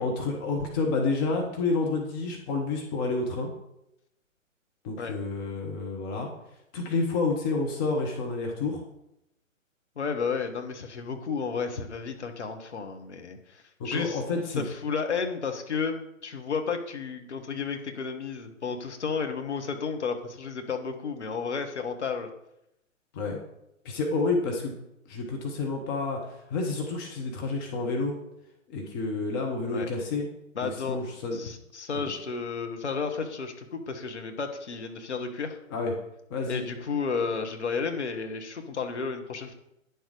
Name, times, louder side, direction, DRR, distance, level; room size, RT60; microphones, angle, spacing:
voice 1, 0.0-3.5 4.8-6.3 6.7-8.8 13.8-14.6 23.1-23.4 23.8-24.7 25.1-28.2 28.7-30.3 30.6-31.4 31.9-32.0 35.7-35.9 36.3-36.6, left 3 dB, 15° left, 1 dB, 0.9 m, -29 dB
voice 2, 10.0-14.2 14.5-22.3 29.7-29.9 30.5-35.6 36.5-39.5, left 5 dB, 55° left, 5 dB, 1.5 m, -32 dB
9.8 x 7.0 x 4.9 m, 0.84 s
figure-of-eight pair, 130°, 40 cm